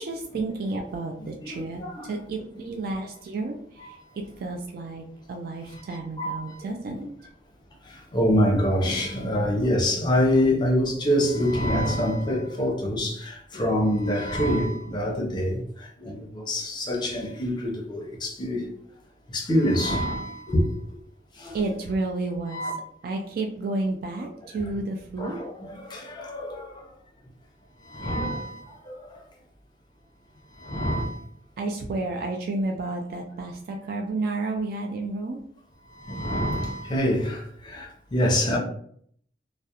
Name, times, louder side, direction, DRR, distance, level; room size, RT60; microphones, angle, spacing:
voice 1, 0.0-3.6 3.8-4.0 4.4-7.0 21.5-22.6 23.0-25.4 31.6-35.4, right 2 dB, 55° right, 0.3 m, -31 dB
voice 2, 8.1-13.2 13.5-15.6 16.1-16.2 16.5-18.6 19.3-20.6 22.5-22.7 25.2-26.5 27.9-28.5 30.7-31.1 36.1-37.4 38.1-38.6, equal, 25° left, 0.6 m, -25 dB
2.3 x 2.0 x 2.7 m
head